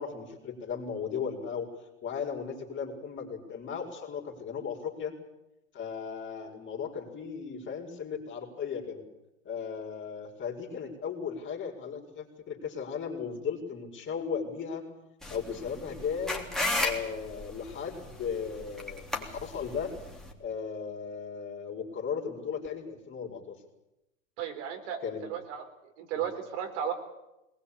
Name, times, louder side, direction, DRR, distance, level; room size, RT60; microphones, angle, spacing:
voice 1, 0.0-1.7 2.0-5.1 5.7-9.0 9.4-14.8 15.3-16.5 16.8-19.9 20.4-23.6 25.0-25.2 26.2-26.3, left 6 dB, 30° left, 1 dB, 4.7 m, -36 dB
sound 1, 15.2-20.3, left 2 dB, ahead, 3.4 m, -35 dB
voice 2, 24.4-25.6 26.0-26.9, right 8 dB, 60° right, 5 dB, 4.3 m, -34 dB
21.0 x 20.0 x 8.6 m, 0.93 s
hypercardioid pair, 105°, 39 cm